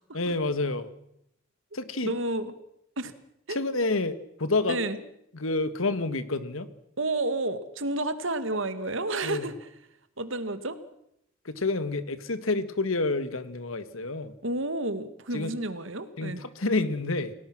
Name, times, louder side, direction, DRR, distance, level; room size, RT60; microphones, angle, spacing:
voice 1, 0.1-0.9 1.7-2.1 3.5-4.8 5.3-6.7 9.2-9.4 11.4-14.3 15.3-15.5 16.2-17.3, left 3 dB, 85° left, 13 dB, 1.7 m, -28 dB
voice 2, 2.0-2.5 3.0-3.1 3.5-3.6 4.7-5.0 7.0-9.5 10.2-10.8 14.4-16.4, right 2 dB, 70° right, 11 dB, 2.0 m, -30 dB
29.5 x 18.5 x 6.1 m, 0.78 s
head